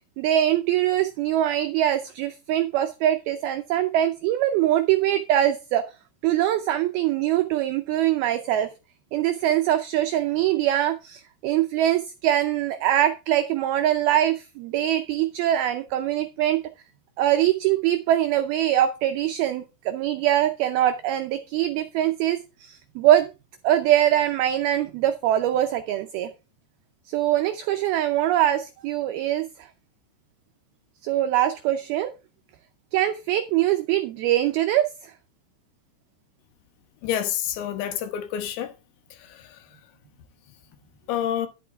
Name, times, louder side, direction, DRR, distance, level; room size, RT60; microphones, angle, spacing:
voice 1, 0.2-5.9 6.2-8.7 9.1-16.6 17.2-23.3 23.6-26.3 27.1-29.7 31.0-32.1 32.9-35.1, right 12 dB, 90° right, 2.1 m, -23 dB
voice 2, 37.0-38.7 39.3-39.4 41.1-41.5, left 10 dB, 75° left, 3.3 m, -28 dB
11.0 x 8.8 x 3.6 m
omnidirectional pair, 5.3 m